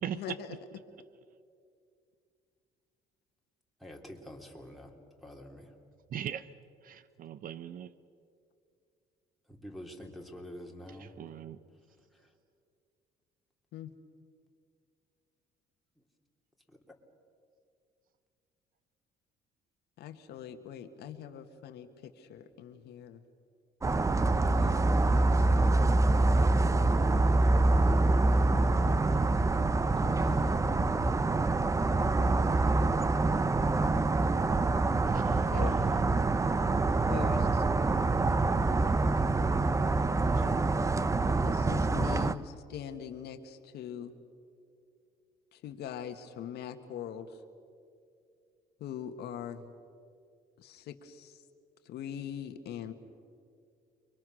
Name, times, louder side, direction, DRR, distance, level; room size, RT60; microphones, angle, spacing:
voice 1, 0.1-0.6 13.7-13.9 20.0-23.2 24.3-24.9 25.2-26.5 30.0-30.5 35.3-35.8 37.0-37.6 41.4-44.2 45.5-47.4 48.8-49.7 50.6-51.4 51.8-52.9, left 9 dB, 75° left, 7 dB, 1.7 m, -42 dB
voice 2, 3.8-4.9 5.2-5.7 9.5-11.1 16.7-16.8 30.2-30.6, equal, ahead, 0 dB, 3.3 m, -47 dB
voice 3, 6.1-6.5 6.8-7.9 10.9-11.6 35.1-35.5 40.4-40.6, right 10 dB, 55° right, 15 dB, 0.8 m, -40 dB
sound 1, 23.8-42.3, right 3 dB, 20° right, 0.7 m, -26 dB
30.0 x 23.0 x 6.4 m, 2.3 s
cardioid pair, 110°, 17 cm